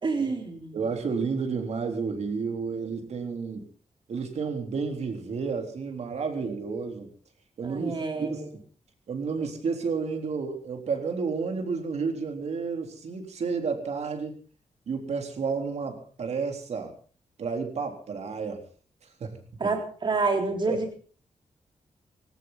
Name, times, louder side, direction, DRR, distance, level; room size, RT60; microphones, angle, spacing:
voice 1, 0.0-0.8 7.6-8.5 19.6-20.9, right 3 dB, 40° right, 4 dB, 3.9 m, -28 dB
voice 2, 0.7-3.7 4.1-7.1 7.6-8.6 9.1-14.4 14.9-16.9 17.4-18.6 19.2-19.7 20.7-20.8, right 5 dB, 65° right, 4 dB, 3.7 m, -31 dB
19.5 x 18.0 x 4.0 m, 0.40 s
wide cardioid pair, 155°, 12 cm